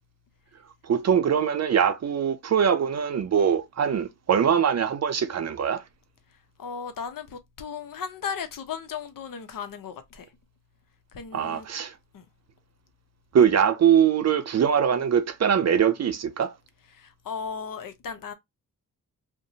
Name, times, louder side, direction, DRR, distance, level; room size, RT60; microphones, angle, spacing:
voice 1, 0.9-5.8 11.3-11.9 13.3-16.5, right 8 dB, 45° right, 0.6 m, -22 dB
voice 2, 6.6-10.3 11.1-11.7 12.1-12.2 16.9-18.3, left 6 dB, 60° left, 0.7 m, -36 dB
2.6 x 2.2 x 2.7 m
supercardioid pair, 45°, 37 cm